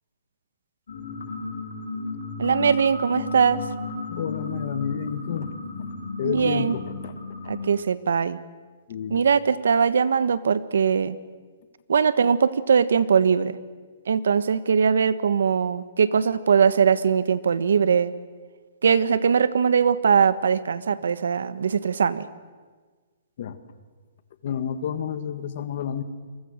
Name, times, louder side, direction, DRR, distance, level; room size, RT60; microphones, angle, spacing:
sound 1, 0.9-7.7, left 3 dB, 75° left, 6.9 m, -34 dB
voice 1, 2.4-3.6 6.2-6.7 7.5-8.4 9.1-11.2 11.9-13.6 14.1-18.1 18.8-22.3, right 6 dB, 85° right, 15 dB, 1.4 m, -21 dB
voice 2, 4.1-5.5 6.2-7.1 7.4-7.5 8.9-9.2 23.4-23.6 24.4-26.0, left 8 dB, 40° left, 11 dB, 1.6 m, -30 dB
29.5 x 23.5 x 6.6 m, 1.4 s
hypercardioid pair, 180°, 0 cm